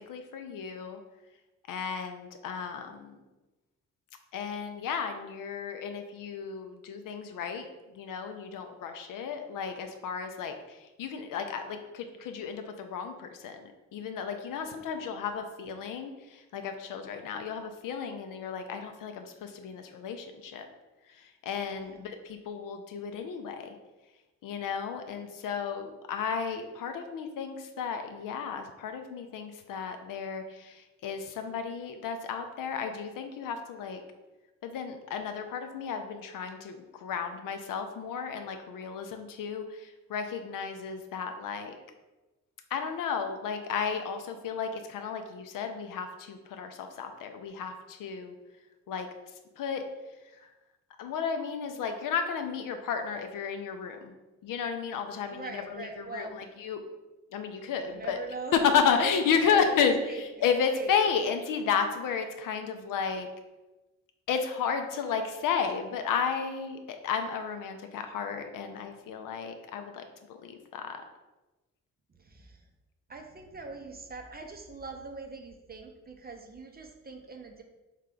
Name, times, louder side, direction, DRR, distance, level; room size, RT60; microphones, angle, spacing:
voice 1, 0.1-1.0 1.7-3.2 4.3-7.7 8.0-20.7 21.4-23.7 24.4-34.0 34.6-41.8 42.7-48.3 48.9-49.1 49.6-49.8 51.0-54.1 54.4-56.8 57.3-58.2 58.5-63.3 64.3-70.0 70.3-71.0, left 6 dB, 55° left, 6 dB, 0.6 m, -33 dB
voice 2, 15.0-15.3 21.7-22.1 55.3-56.4 57.9-58.7 59.0-60.4 60.7-60.9 72.2-72.6 73.1-77.6, right 3 dB, 25° right, 4 dB, 0.6 m, -42 dB
3.6 x 3.2 x 3.7 m, 1.1 s
hypercardioid pair, 40°, 40 cm